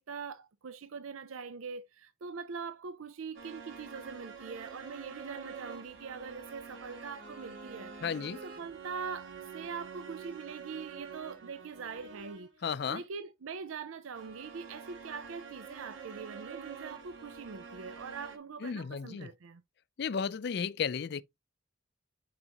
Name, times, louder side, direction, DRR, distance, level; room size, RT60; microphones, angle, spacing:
voice 1, 0.0-8.0 8.3-19.6, right 5 dB, 90° right, 0.5 m, -43 dB
sound 1, 3.3-12.6 14.1-18.4, right 5 dB, 70° right, 1.5 m, -47 dB
voice 2, 8.0-8.4 12.6-13.0 18.6-19.3 20.0-21.2, left 6 dB, 55° left, 0.4 m, -33 dB
7.8 x 4.9 x 2.9 m
head